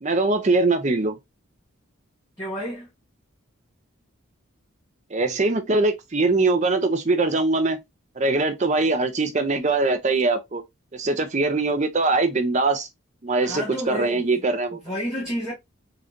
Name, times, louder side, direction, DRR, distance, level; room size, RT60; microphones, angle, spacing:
voice 1, 0.0-1.2 5.1-7.8 8.2-10.6 10.9-12.9 13.2-14.8, right 3 dB, 35° right, 0.6 m, -22 dB
voice 2, 2.4-2.9 13.4-14.3 14.8-15.5, equal, 10° left, 1.6 m, -30 dB
3.9 x 3.2 x 2.5 m
head